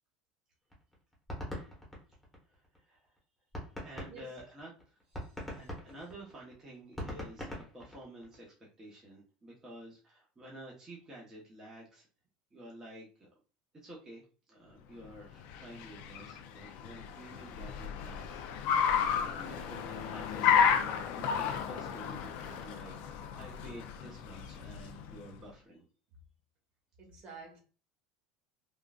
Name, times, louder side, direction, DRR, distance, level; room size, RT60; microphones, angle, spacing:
sound 1, 0.7-2.8 3.2-3.3 3.5-8.4, equal, 5° left, 1.1 m, -42 dB
voice 1, 3.8-4.7 5.5-12.1 12.5-13.3 13.8-14.2 14.5-18.9 19.4-25.8, right 1 dB, 20° right, 1.0 m, -50 dB
voice 2, 5.2-5.7 27.0-27.6, right 4 dB, 40° right, 1.3 m, -51 dB
Car, 15.1-25.4, left 7 dB, 65° left, 0.4 m, -32 dB
3.7 x 2.4 x 2.4 m
supercardioid pair, 130°, 3 cm